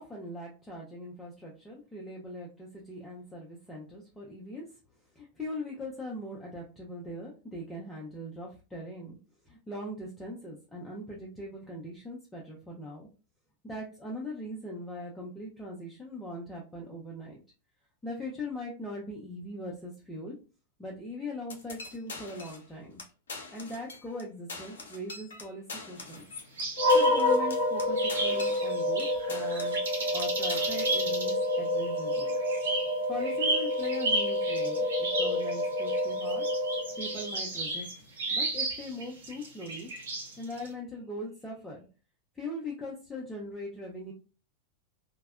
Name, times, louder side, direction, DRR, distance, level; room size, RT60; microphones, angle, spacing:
voice 1, 0.0-4.6 5.2-9.2 9.4-13.1 13.6-17.4 18.0-20.3 20.8-23.0 23.5-26.2 26.9-29.8 30.1-32.3 33.1-36.5 37.0-37.9 38.3-39.9 40.4-41.8 42.3-44.1, left 1 dB, 10° left, -4 dB, 0.5 m, -40 dB
sound 1, 21.5-22.7 23.0-23.1 23.3-24.2 24.5-29.0 29.3-29.9 30.2-31.0, left 3 dB, 65° left, 0.5 m, -43 dB
sound 2, 26.6-27.5 28.0-40.7, right 2 dB, 65° right, 0.8 m, -34 dB
sound 3, 26.8-37.3, left 1 dB, 85° right, 1.1 m, -28 dB
2.6 x 2.0 x 2.3 m, 0.33 s
figure-of-eight pair, 90°, 0 cm